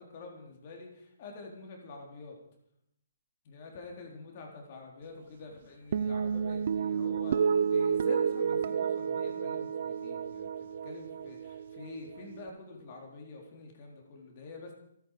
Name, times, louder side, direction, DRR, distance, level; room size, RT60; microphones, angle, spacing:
voice 1, 0.0-2.4 3.4-10.5 10.8-14.7, left 3 dB, 40° left, 1 dB, 4.0 m, -47 dB
sound 1, 5.9-12.5, right 7 dB, 55° right, 0.9 m, -31 dB
27.5 x 9.5 x 5.1 m, 0.75 s
hypercardioid pair, 145°, 0 cm